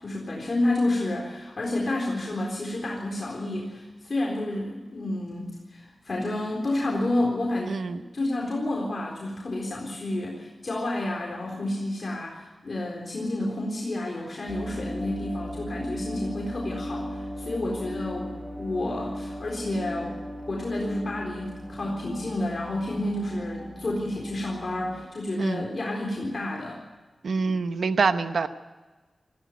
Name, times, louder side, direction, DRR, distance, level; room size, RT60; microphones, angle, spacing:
voice 1, 0.0-7.8 8.1-20.1 20.5-26.8 27.4-27.6, left 1 dB, 45° left, -2 dB, 4.0 m, -30 dB
voice 2, 7.7-8.0 25.4-25.6 27.2-28.5, right 4 dB, 70° right, 9 dB, 0.9 m, -25 dB
sound 1, 14.5-25.1, equal, 5° right, 5.8 m, -37 dB
19.5 x 15.0 x 9.6 m, 1.3 s
wide cardioid pair, 120°, 0 cm